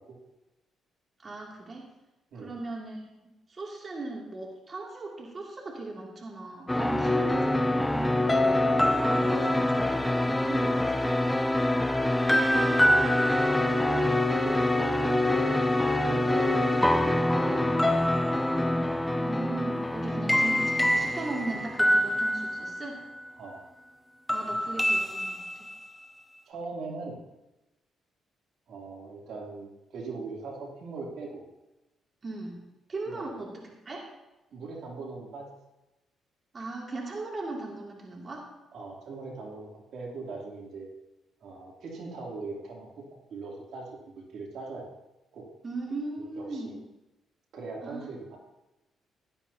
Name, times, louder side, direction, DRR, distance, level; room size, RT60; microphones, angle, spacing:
voice 1, 1.2-1.9 2.3-3.0 3.5-8.3 8.7-11.2 19.1-23.0 24.3-25.7 32.2-32.6 32.9-34.1 36.5-38.5 45.6-46.8 47.8-48.1, right 2 dB, 35° right, -2 dB, 2.6 m, -38 dB
sound 1, 6.7-23.3 24.3-26.0, left 1 dB, 10° left, 0.7 m, -25 dB
voice 2, 12.3-13.4 13.8-15.7 16.0-17.9 19.9-20.5 23.4-23.6 24.7-24.9 26.5-27.2 28.7-31.4 33.1-33.2 34.5-35.5 38.7-40.9 41.4-44.9 45.3-45.5 46.4-46.7 47.5-48.4, right 3 dB, 70° right, -2 dB, 3.0 m, -40 dB
16.5 x 11.5 x 2.8 m, 0.99 s
cardioid pair, 90°, 0 cm